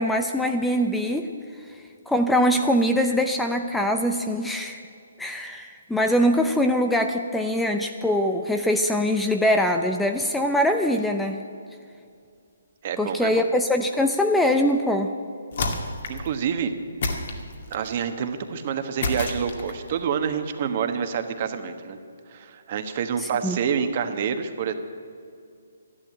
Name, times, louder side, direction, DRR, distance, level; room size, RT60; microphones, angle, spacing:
voice 1, 0.0-1.3 2.1-4.8 5.2-11.4 13.0-15.1 23.2-23.6, equal, 5° left, 5 dB, 0.6 m, -23 dB
voice 2, 12.8-13.5 16.1-16.7 17.7-22.0 22.3-24.7, right 7 dB, 40° right, 7 dB, 1.3 m, -27 dB
sound 1, 15.5-16.3 17.0-17.9 19.0-19.9, left 3 dB, 55° left, 2.1 m, -29 dB
13.0 x 11.5 x 8.9 m, 2.4 s
figure-of-eight pair, 140°, 0 cm